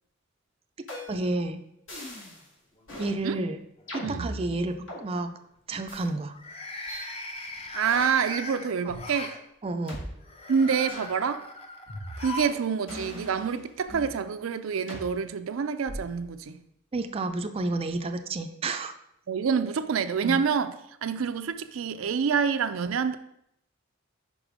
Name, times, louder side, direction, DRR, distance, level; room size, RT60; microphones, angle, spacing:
sound 1, 0.9-1.3 1.9-2.4 2.9-3.1 3.9-5.0 5.9-6.0 6.9-7.1 7.9-8.3 8.9-9.0 9.9-10.0 10.9-11.1 11.9-12.4 12.9-14.1 14.9-15.1 15.9-16.2, equal, 70° left, 2.9 m, -39 dB
voice 1, 1.1-1.6 3.0-3.6 3.9-5.3 5.7-6.4 8.9-9.0 9.6-10.0 16.9-18.9 20.2-20.4, right 2 dB, 30° right, 0.4 m, -30 dB
sound 2, 2.8-3.4 3.8-4.2 6.3-9.4 10.2-12.6 12.9-13.0 14.1-14.2, left 2 dB, 30° left, 0.7 m, -39 dB
voice 2, 7.7-9.3 10.5-11.4 12.2-16.6 19.3-20.7 21.0-23.2, right 6 dB, 90° right, 0.4 m, -27 dB
5.4 x 4.9 x 5.0 m
head